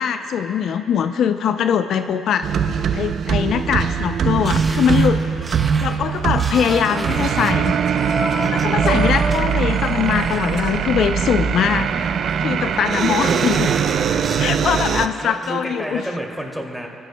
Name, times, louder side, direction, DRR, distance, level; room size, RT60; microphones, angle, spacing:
voice 1, 0.0-2.5 2.9-5.2 5.8-7.7 8.4-11.9 12.4-13.7 14.4-16.0, left 8 dB, 70° left, 9 dB, 0.4 m, -21 dB
sound 1, 2.4-15.1, right 7 dB, 65° right, 0.5 m, -21 dB
sound 2, 4.5-7.7 8.3-8.7 9.1-9.6 10.0-10.6 11.0-11.7 12.0-12.5 13.0-14.6 14.9-15.5 15.9-16.0, right 3 dB, 30° right, 1.1 m, -35 dB
sound 3, 6.0-11.4, equal, 30° left, 2.3 m, -31 dB
voice 2, 6.8-7.3 15.2-16.9, right 1 dB, ahead, -1 dB, 2.4 m, -30 dB
25.0 x 16.0 x 2.2 m, 2.7 s
cardioid pair, 90°, 0 cm